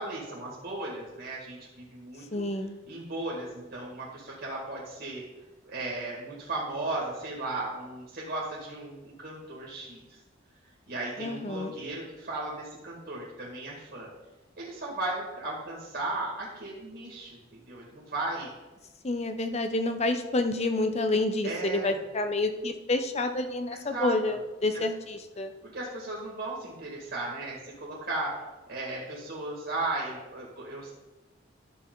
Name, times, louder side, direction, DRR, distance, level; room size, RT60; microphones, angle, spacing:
voice 1, 0.0-2.4 2.9-5.2 5.6-10.0 10.9-14.1 14.6-17.4 17.7-18.5 21.4-22.0 23.7-24.4 24.7-24.8 25.6-28.3 28.7-30.9, right 2 dB, 55° right, -5 dB, 2.1 m, -36 dB
voice 2, 2.3-2.7 11.2-11.7 19.0-25.5, left 2 dB, 35° left, 7 dB, 0.7 m, -29 dB
11.5 x 6.6 x 3.9 m, 1.1 s
head